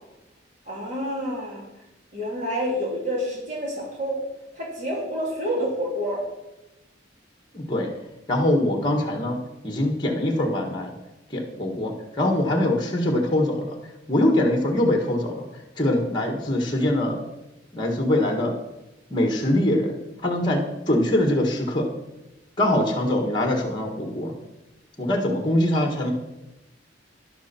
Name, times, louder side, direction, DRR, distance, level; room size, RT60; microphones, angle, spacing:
voice 1, 0.6-1.6 2.1-4.2 4.5-6.2, equal, 40° right, -3 dB, 3.4 m, -28 dB
voice 2, 7.5-7.9 8.3-9.4 9.6-10.9 11.3-13.7 14.1-15.5 15.8-17.2 17.7-18.6 19.1-21.9 22.6-24.3 25.0-26.1, left 1 dB, 25° left, 2 dB, 1.6 m, -23 dB
12.5 x 11.0 x 4.4 m, 0.96 s
head